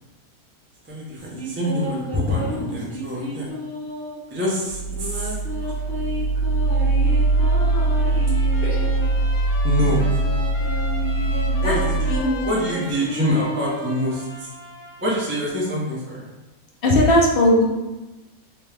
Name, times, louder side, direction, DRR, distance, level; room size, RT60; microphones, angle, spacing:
voice 1, 0.9-3.5 4.3-5.8 9.6-10.0 11.6-12.2 12.4-14.5 15.0-16.3, equal, 15° right, -5 dB, 0.4 m, -25 dB
sound 1, 1.2-4.3 4.9-9.1 9.7-14.4, right 1 dB, 40° right, 1.0 m, -32 dB
sound 2, 4.7-12.2, right 2 dB, 80° right, 1.1 m, -22 dB
Trumpet, 7.1-15.2, left 2 dB, 85° left, 1.2 m, -39 dB
voice 2, 7.6-8.3 8.6-8.9 11.6-11.7 12.1-12.4 16.8-17.6, left 1 dB, 55° left, -1 dB, 0.7 m, -20 dB
3.3 x 3.0 x 3.3 m, 1.1 s
omnidirectional pair, 1.5 m